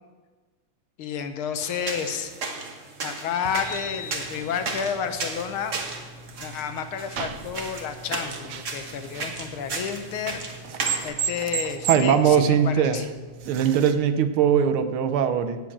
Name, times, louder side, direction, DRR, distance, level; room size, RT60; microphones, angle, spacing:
voice 1, 1.0-2.3 3.0-5.8 6.4-10.4 11.0-13.0, left 7 dB, 80° left, 9 dB, 1.7 m, -31 dB
sound 1, 1.6-11.0, right 4 dB, 45° right, 1.3 m, -35 dB
sound 2, 3.4-13.9, right 6 dB, 65° right, 0.8 m, -36 dB
sound 3, 3.6-5.0, left 7 dB, 40° left, 0.8 m, -40 dB
voice 2, 11.9-13.0 13.5-15.6, right 8 dB, 80° right, 10 dB, 1.6 m, -20 dB
7.7 x 7.7 x 8.5 m, 1.3 s
omnidirectional pair, 2.3 m